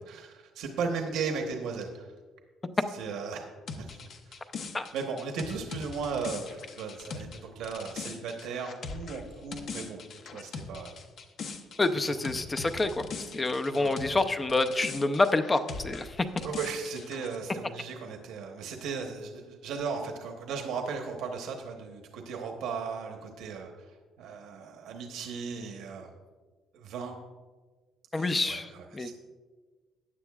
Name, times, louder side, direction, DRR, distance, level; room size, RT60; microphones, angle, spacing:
voice 1, 0.1-2.1 2.9-3.5 3.8-4.4 4.9-10.0 10.3-11.0 12.1-12.2 13.7-14.0 16.4-26.1 26.7-27.2 28.1-29.1, right 5 dB, 80° right, 3 dB, 1.0 m, -36 dB
sound 1, 3.7-14.2 14.5-17.4, left 4 dB, 50° left, 0.8 m, -41 dB
voice 2, 11.8-13.1 13.3-16.3 28.1-29.1, left 2 dB, 20° left, 9 dB, 0.5 m, -27 dB
15.0 x 9.7 x 2.4 m, 1.4 s
cardioid pair, 145°, 0 cm